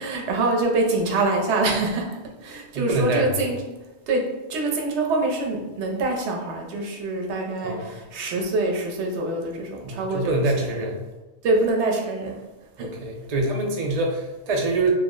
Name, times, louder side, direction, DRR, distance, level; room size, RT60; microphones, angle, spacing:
voice 1, 0.0-3.6 4.1-10.3 11.4-12.5 12.8-12.9, right 2 dB, 80° right, 1 dB, 0.9 m, -25 dB
voice 2, 2.7-3.4 7.6-7.9 9.8-11.1 12.8-14.9, right 2 dB, 50° right, 1 dB, 0.5 m, -25 dB
3.0 x 2.0 x 3.6 m, 1.1 s
omnidirectional pair, 1.1 m